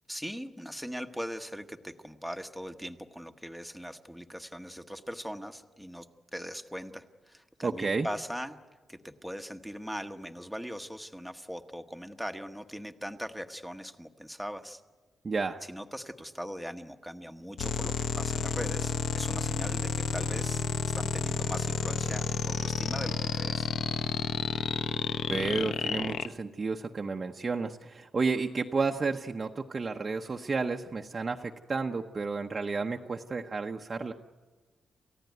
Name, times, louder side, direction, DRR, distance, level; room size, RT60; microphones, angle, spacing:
voice 1, 0.1-6.1 6.3-8.6 8.9-14.8 15.7-23.7, equal, ahead, 7 dB, 1.1 m, -40 dB
voice 2, 7.6-8.1 15.2-15.6 25.3-34.1, right 4 dB, 30° right, 3 dB, 0.9 m, -31 dB
sound 1, 17.6-26.3, left 6 dB, 70° left, 1.0 m, -31 dB
29.0 x 15.5 x 9.3 m, 1.4 s
wide cardioid pair, 140°, 0 cm